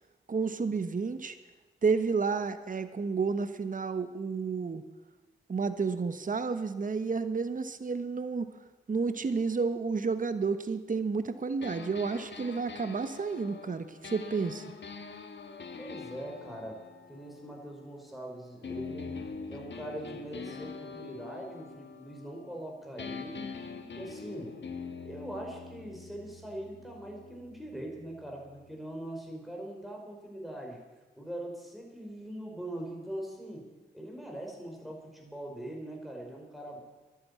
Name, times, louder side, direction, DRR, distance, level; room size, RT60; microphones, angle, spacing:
voice 1, 0.3-1.3 1.8-4.8 5.5-8.5 8.9-14.6, right 4 dB, 45° right, 11 dB, 1.0 m, -31 dB
sound 1, 11.6-18.2 18.6-22.7 23.0-28.7, left 5 dB, 65° left, 1.4 m, -44 dB
voice 2, 15.8-19.2 19.5-23.5 23.9-24.5 25.0-30.8 31.2-33.7 33.9-36.8, right 1 dB, ahead, 0 dB, 5.2 m, -42 dB
11.0 x 9.8 x 8.5 m, 1.2 s
cardioid pair, 45°, 20 cm